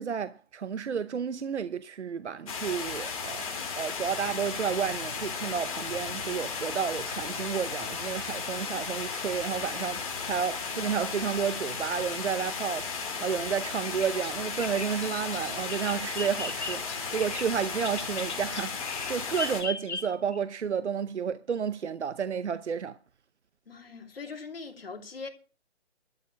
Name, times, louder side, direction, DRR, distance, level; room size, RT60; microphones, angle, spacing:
voice 1, 0.0-23.0, right 7 dB, 80° right, 0.8 m, -31 dB
sound 1, 2.5-19.6, left 5 dB, 30° left, 2.9 m, -35 dB
Bird vocalization bird call bird song, 13.8-20.4, left 4 dB, 85° left, 1.8 m, -38 dB
voice 2, 23.7-25.3, left 4 dB, 55° left, 2.8 m, -41 dB
12.5 x 6.5 x 8.3 m
hypercardioid pair, 175°, 34 cm